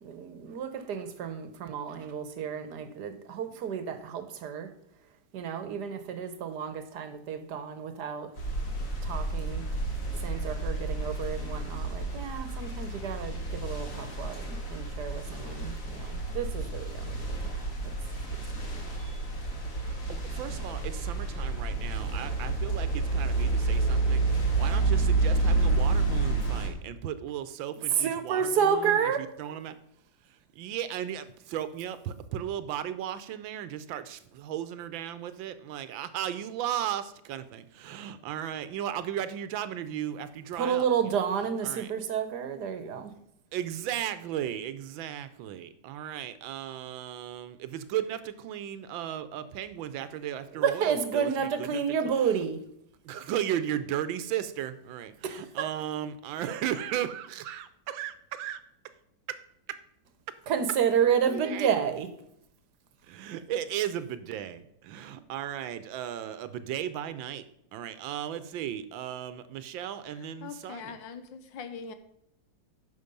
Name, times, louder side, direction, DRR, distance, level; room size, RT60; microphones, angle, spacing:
voice 1, 0.0-4.7 5.3-8.3 9.0-9.6 10.2-17.3 17.8-17.9 18.6-18.7 19.0-19.2 27.9-29.2 40.5-43.1 50.6-52.6 55.2-55.7 60.5-62.1, right 7 dB, 65° right, 9 dB, 1.4 m, -30 dB
sound 1, 8.4-26.7, right 3 dB, 45° left, 2.1 m, -29 dB
voice 2, 19.8-29.8 30.5-40.9 41.6-41.9 43.5-51.8 53.0-58.6 59.3-59.4 59.7-59.8 61.3-61.7 63.1-67.4 67.7-71.0, right 10 dB, 85° right, 13 dB, 1.5 m, -35 dB
voice 3, 70.4-71.9, left 6 dB, 75° left, 10 dB, 1.6 m, -41 dB
9.6 x 6.0 x 5.3 m, 0.75 s
omnidirectional pair, 2.1 m